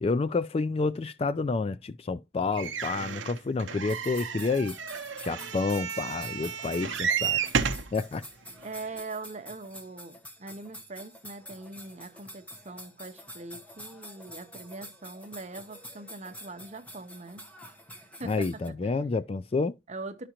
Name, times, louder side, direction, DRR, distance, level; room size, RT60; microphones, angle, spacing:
voice 1, 0.0-4.7 5.2-7.5 7.9-8.2 18.2-19.7, left 3 dB, 30° left, 0.3 m, -29 dB
sound 1, 2.5-7.9 8.6-8.7 9.0-9.1, right 6 dB, 75° right, 0.7 m, -32 dB
sound 2, 3.9-18.7, equal, 5° left, 1.0 m, -47 dB
voice 2, 8.6-17.4 17.9-18.8 19.9-20.3, right 3 dB, 35° right, 0.8 m, -42 dB
11.0 x 5.0 x 2.9 m
head